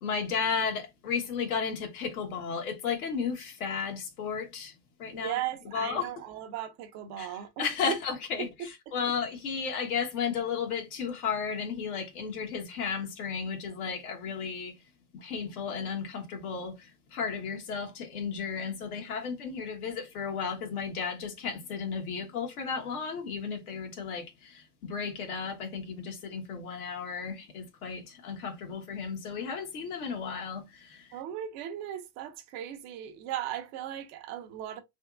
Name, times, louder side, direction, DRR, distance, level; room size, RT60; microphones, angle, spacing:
voice 1, 0.0-4.7 5.0-5.3 5.7-6.1 7.2-7.3 7.6-14.8 15.1-31.1, left 6 dB, 70° left, 1.5 m, -34 dB
voice 2, 5.1-7.6 8.9-9.0 31.1-34.8, right 11 dB, 35° right, 0.6 m, -37 dB
3.4 x 2.9 x 2.4 m
hypercardioid pair, 110°, 46 cm